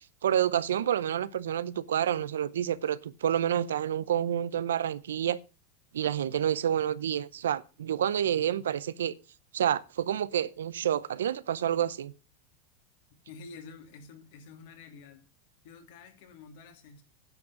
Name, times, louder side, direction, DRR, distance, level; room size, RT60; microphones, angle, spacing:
voice 1, 0.2-5.4 5.9-9.1 9.5-12.1, right 10 dB, 85° right, 0.6 m, -28 dB
voice 2, 13.3-15.2 15.6-17.0, left 4 dB, 70° left, 2.9 m, -49 dB
10.5 x 6.1 x 7.7 m
hypercardioid pair, 105°, 0 cm